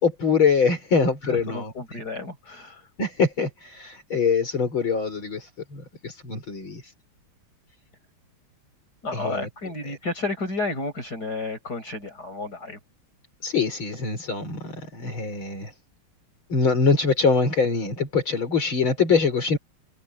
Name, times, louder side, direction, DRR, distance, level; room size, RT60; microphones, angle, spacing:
voice 1, 0.0-1.7 3.0-6.9 9.1-9.5 13.4-15.7 16.5-19.6, left 5 dB, 65° left, 5.2 m, -23 dB
voice 2, 1.3-2.8 9.0-12.8, left 3 dB, 45° left, 8.2 m, -31 dB
omnidirectional pair, 2.4 m